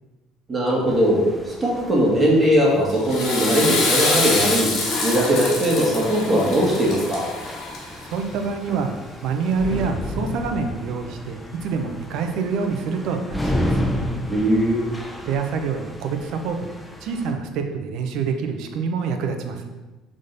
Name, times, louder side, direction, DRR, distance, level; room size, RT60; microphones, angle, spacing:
voice 1, 0.5-4.7 5.0-7.3 14.3-14.9, equal, 20° right, -4 dB, 1.8 m, -19 dB
Baustelle Propellerflugzeug Glocke entfernt, 0.9-17.3, left 1 dB, 10° left, 0.7 m, -33 dB
Water / Toilet flush, 2.9-8.1, left 2 dB, 65° left, 1.7 m, -25 dB
voice 2, 8.1-8.9 9.2-13.9 15.3-16.7 17.0-19.6, right 5 dB, 70° right, 5 dB, 0.7 m, -26 dB
6.6 x 3.7 x 4.0 m, 1.2 s
cardioid pair, 105°, 0 cm